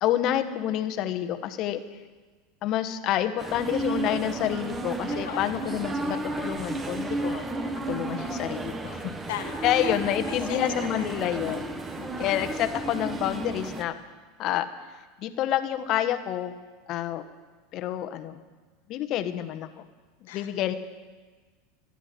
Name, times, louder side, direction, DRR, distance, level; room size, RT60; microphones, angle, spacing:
voice 1, 0.0-1.8 2.6-7.4 7.9-9.1 9.6-11.6 12.2-14.0 14.4-14.7 15.2-16.6 16.9-17.2 17.7-18.4 18.9-19.8 20.3-20.7, left 11 dB, 50° left, 9 dB, 1.3 m, -28 dB
sound 1, 3.4-13.8, right 2 dB, 20° right, 1.5 m, -33 dB
voice 2, 5.2-6.0 9.3-11.2 11.5-12.3 20.3-20.5, left 11 dB, 75° left, 6 dB, 1.6 m, -39 dB
26.5 x 10.0 x 4.5 m, 1.3 s
hypercardioid pair, 95°, 0 cm